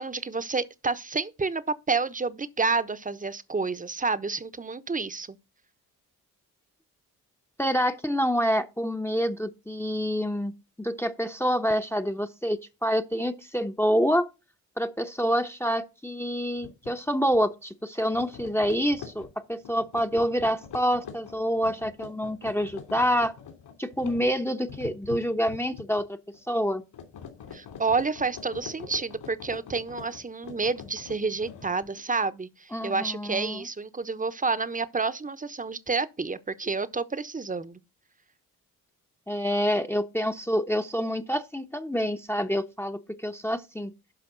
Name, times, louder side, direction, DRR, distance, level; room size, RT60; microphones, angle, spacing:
voice 1, 0.0-5.4 27.5-37.8, right 4 dB, 20° right, 1.1 m, -29 dB
voice 2, 7.6-10.5 10.8-14.3 14.8-23.3 23.8-26.2 26.5-26.8 32.7-33.7 39.3-43.9, equal, 5° left, 1.0 m, -27 dB
sound 1, 16.6-16.9 17.3-17.5 18.0-26.0 26.3-26.7 26.9-32.0, left 7 dB, 60° left, 3.2 m, -44 dB
12.0 x 5.2 x 4.0 m
hypercardioid pair, 40°, 45 cm